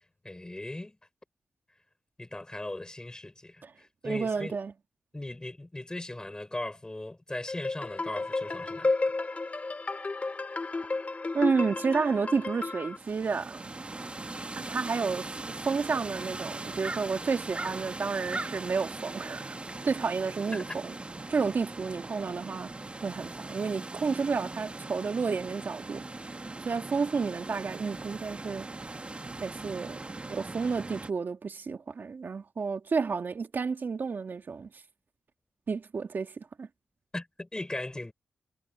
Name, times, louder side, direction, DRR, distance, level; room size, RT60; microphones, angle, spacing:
voice 1, 0.2-1.0 2.2-4.5 5.1-8.9 20.5-20.8 37.1-38.1, left 1 dB, 20° left, 5.5 m, -38 dB
voice 2, 4.0-4.7 11.3-13.7 14.5-19.6 19.8-20.9 21.3-22.7 23.0-26.0 26.6-28.9 29.4-34.8 35.7-36.7, right 5 dB, 55° right, 2.1 m, -31 dB
sound 1, 7.5-13.0, left 3 dB, 35° left, 3.4 m, -32 dB
sound 2, 13.0-31.1, right 2 dB, 30° right, 2.1 m, -40 dB
cardioid pair, 60°, 4 cm